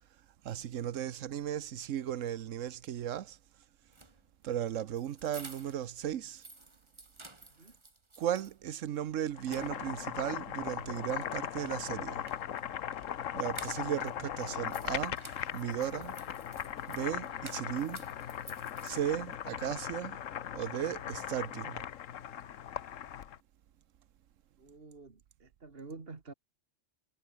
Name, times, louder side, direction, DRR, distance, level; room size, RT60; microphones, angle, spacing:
voice 1, 0.4-3.4 4.4-6.4 8.2-12.2 13.3-15.2 15.5-16.2 16.9-18.1 18.8-20.2 20.5-21.8, right 10 dB, 80° right, 1.2 m, -36 dB
sound 1, 3.8-5.9 6.2-8.6 9.0-9.1 9.4-10.2 11.8-14.1 14.4-19.3, right 2 dB, 20° right, 1.8 m, -53 dB
Boiling, 9.3-23.4, left 10 dB, 80° left, 1.3 m, -39 dB
voice 2, 24.6-26.3, right 3 dB, 50° right, 2.3 m, -49 dB
omnidirectional pair, 1.3 m